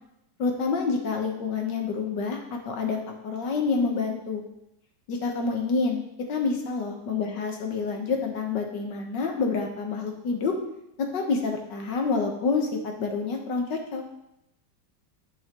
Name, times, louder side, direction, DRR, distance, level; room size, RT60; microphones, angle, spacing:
voice 1, 0.4-2.4 2.7-4.4 5.1-6.0 6.3-10.5 11.1-14.0, left 4 dB, 65° left, 2 dB, 1.8 m, -28 dB
12.5 x 5.6 x 3.0 m, 0.83 s
omnidirectional pair, 2.1 m